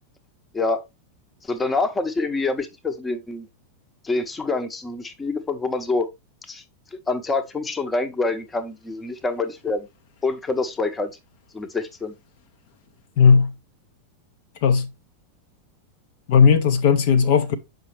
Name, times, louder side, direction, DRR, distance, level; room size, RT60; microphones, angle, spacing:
voice 1, 1.4-3.5 4.0-6.1 6.5-6.6 7.1-9.9 10.2-11.1 11.5-12.1, left 3 dB, 15° left, 0.9 m, -26 dB
voice 2, 13.2-13.5 14.6-14.9 16.3-17.5, left 6 dB, 50° left, 0.7 m, -16 dB
7.1 x 5.2 x 3.0 m
figure-of-eight pair, 90°, 0 cm